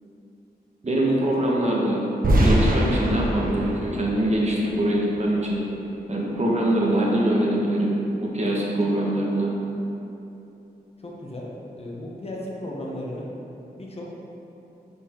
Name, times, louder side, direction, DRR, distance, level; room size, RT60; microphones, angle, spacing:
voice 1, 0.8-2.0 2.3-5.6 6.1-9.5, right 1 dB, 45° right, -4 dB, 1.3 m, -23 dB
sound 1, 2.2-5.2, right 1 dB, 60° right, 1.0 m, -23 dB
voice 2, 11.0-13.3 13.8-14.1, left 1 dB, 40° left, -3 dB, 1.2 m, -35 dB
5.2 x 4.9 x 5.2 m, 2.9 s
wide cardioid pair, 90°, 16 cm